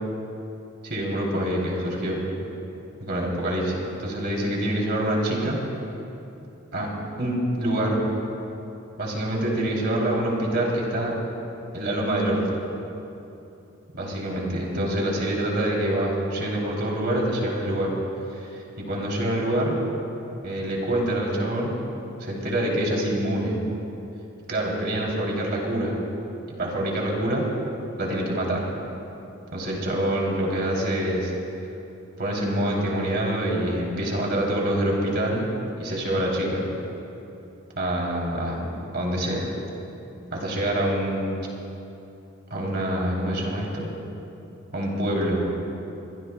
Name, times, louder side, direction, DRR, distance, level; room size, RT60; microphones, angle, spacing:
voice 1, 0.8-2.2 3.0-5.6 6.7-6.9 7.2-8.0 9.0-11.2 11.7-12.4 13.9-17.9 18.3-18.5 18.8-19.8 20.4-21.7 22.2-23.6 24.5-26.0 26.6-27.5 28.0-28.7 29.5-31.3 32.2-35.5 35.8-36.7 37.8-39.5 40.3-41.3 42.5-43.9 44.7-45.5, right 1 dB, 55° right, -2 dB, 3.1 m, -26 dB
25.0 x 21.5 x 2.3 m, 2.9 s
head